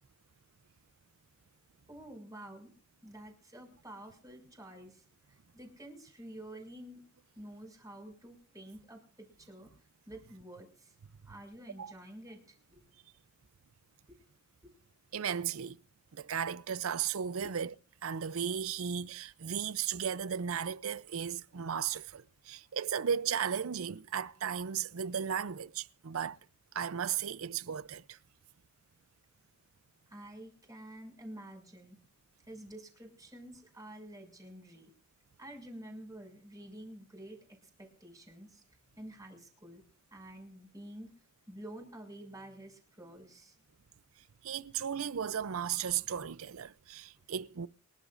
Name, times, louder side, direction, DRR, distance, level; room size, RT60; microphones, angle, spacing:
voice 1, 1.9-2.7 3.0-7.0 7.3-9.7 10.1-10.9 11.2-12.8 14.1-14.2 14.6-14.7 17.4-17.5 30.1-32.0 32.4-34.9 35.4-38.6 39.0-39.8 40.1-41.1 41.5-43.6, right 1 dB, 15° right, 6.4 m, -49 dB
voice 2, 15.1-15.8 16.1-17.7 18.0-26.4 26.7-28.2 44.4-47.7, right 8 dB, 75° right, 0.5 m, -35 dB
28.5 x 12.0 x 2.6 m
head